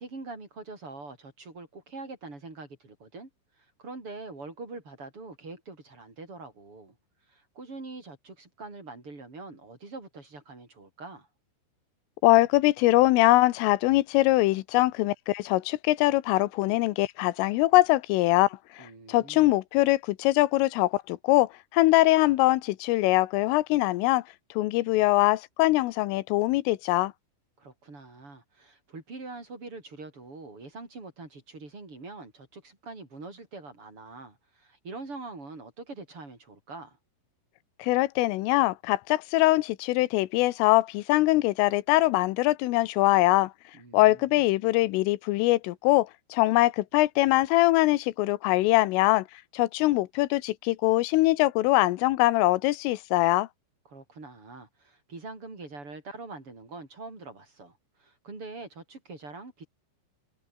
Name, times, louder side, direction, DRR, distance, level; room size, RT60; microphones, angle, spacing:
voice 1, 0.0-3.3 3.6-7.0 7.3-11.3 18.8-19.5 27.6-37.0 43.7-44.4 53.9-59.6, right 3 dB, 25° right, 6.5 m, -44 dB
voice 2, 12.2-18.5 18.8-24.2 24.6-27.1 37.8-43.5 43.9-49.3 49.5-53.5, left 18 dB, 90° left, 3.6 m, -23 dB
omnidirectional pair, 5.6 m